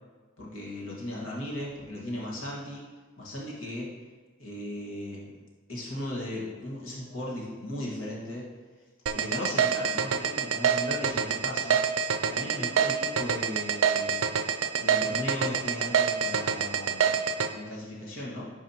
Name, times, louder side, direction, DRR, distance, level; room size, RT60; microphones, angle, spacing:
voice 1, 0.4-2.9 3.2-3.9 4.4-5.4 5.7-8.4 9.1-18.5, left 1 dB, 85° left, -4 dB, 1.6 m, -37 dB
sound 1, 9.1-17.5, right 7 dB, 75° right, 0.4 m, -25 dB
11.0 x 4.8 x 2.9 m, 1.4 s
head